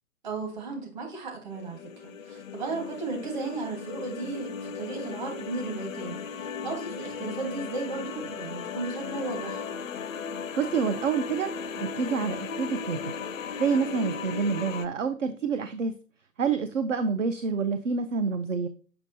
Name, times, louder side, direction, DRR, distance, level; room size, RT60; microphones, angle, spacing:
voice 1, 0.2-9.7, right 3 dB, 30° right, 2 dB, 1.5 m, -35 dB
sound 1, 1.5-14.9, left 6 dB, 55° left, 0.5 m, -36 dB
voice 2, 10.6-13.1 13.6-15.9 16.4-18.7, right 5 dB, 55° right, 10 dB, 0.5 m, -28 dB
6.9 x 5.4 x 2.7 m, 0.39 s
hypercardioid pair, 150°, 47 cm